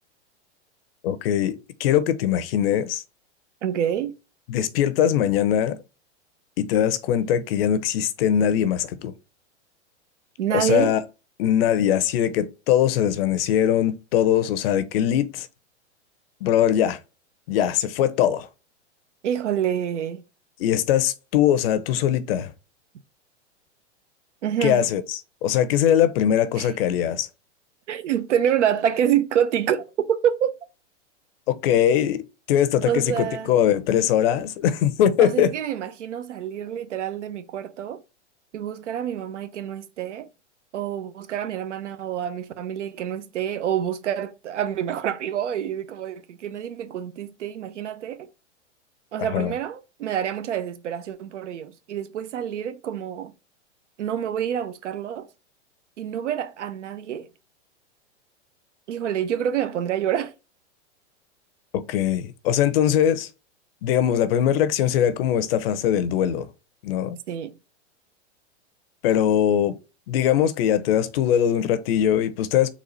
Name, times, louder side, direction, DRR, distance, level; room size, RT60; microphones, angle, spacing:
voice 1, 1.0-3.0 4.5-5.8 6.6-9.1 10.5-11.0 11.4-15.5 16.4-17.0 17.5-18.5 20.6-22.5 24.6-27.3 31.5-32.2 32.5-35.5 49.2-49.5 61.7-63.3 63.8-66.5 66.8-67.2 69.0-69.7 70.1-72.7, left 10 dB, 55° left, 0.7 m, -21 dB
voice 2, 3.6-4.1 10.4-10.9 19.2-20.2 24.4-24.9 26.6-26.7 27.9-30.5 32.8-33.6 35.2-38.0 38.5-40.3 40.7-48.3 49.1-53.3 54.0-55.3 56.0-57.3 58.9-60.3 67.3-67.6, right 9 dB, 80° right, 0.7 m, -27 dB
4.1 x 2.4 x 4.0 m
hypercardioid pair, 130°, 35 cm